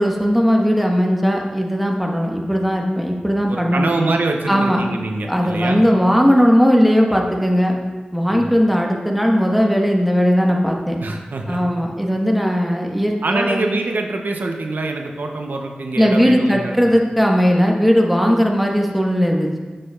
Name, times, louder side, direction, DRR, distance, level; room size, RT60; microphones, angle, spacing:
voice 1, 0.0-3.9 4.5-4.8 5.3-7.8 8.1-11.0 11.5-13.6 16.0-19.6, equal, ahead, 0 dB, 1.2 m, -17 dB
voice 2, 3.5-5.8 8.3-8.4 11.0-11.6 13.2-16.8, right 2 dB, 85° right, 3 dB, 0.6 m, -24 dB
9.2 x 6.6 x 2.3 m, 1.3 s
cardioid pair, 40°, 3 cm